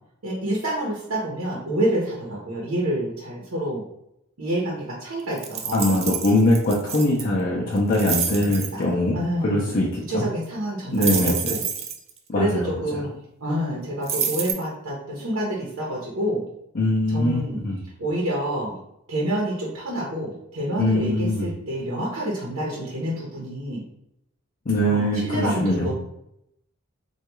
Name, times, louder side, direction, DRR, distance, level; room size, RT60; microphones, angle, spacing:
voice 1, 0.2-3.8 4.4-6.0 8.4-9.7 10.1-11.6 12.3-13.1 13.4-16.4 17.1-17.6 18.0-18.8 19.1-23.8 24.8-25.9, right 1 dB, 85° right, -4 dB, 0.8 m, -28 dB
sound 1, 5.4-7.2 7.8-8.7 11.0-12.1 14.0-14.5, right 7 dB, 30° right, 0.3 m, -28 dB
voice 2, 5.7-9.2 9.4-10.2 10.9-11.5 12.3-12.7 16.8-17.8 20.8-21.5 24.7-25.9, left 1 dB, 40° left, -5 dB, 0.5 m, -22 dB
3.4 x 2.3 x 3.0 m, 0.79 s
head